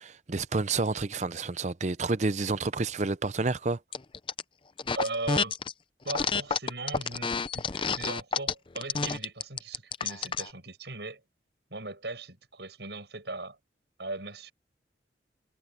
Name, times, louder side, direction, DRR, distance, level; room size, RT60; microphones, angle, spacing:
voice 1, 0.0-3.8, right 3 dB, 40° right, 0.6 m, -29 dB
sound 1, 3.9-4.4 4.8-5.7 6.1-10.5, left 5 dB, 30° left, 0.5 m, -29 dB
voice 2, 4.9-5.6 6.0-11.2 11.7-13.6 14.0-14.5, right 2 dB, 70° right, 7.1 m, -38 dB
head